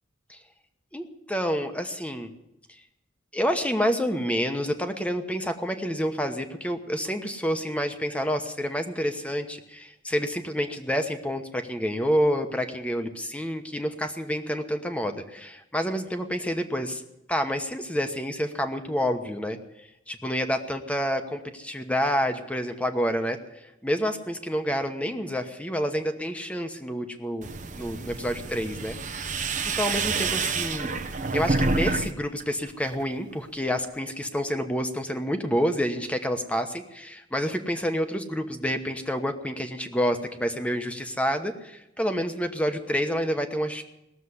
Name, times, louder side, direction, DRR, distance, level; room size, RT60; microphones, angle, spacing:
voice 1, 0.9-2.3 3.3-17.0 17.3-19.6 20.1-23.4 23.8-27.5 27.8-30.9 31.3-43.8, equal, 5° left, 6 dB, 1.0 m, -28 dB
sound 1, 27.4-32.1 32.4-33.0, right 3 dB, 40° right, 0.9 m, -28 dB
18.5 x 7.3 x 9.6 m, 0.89 s
head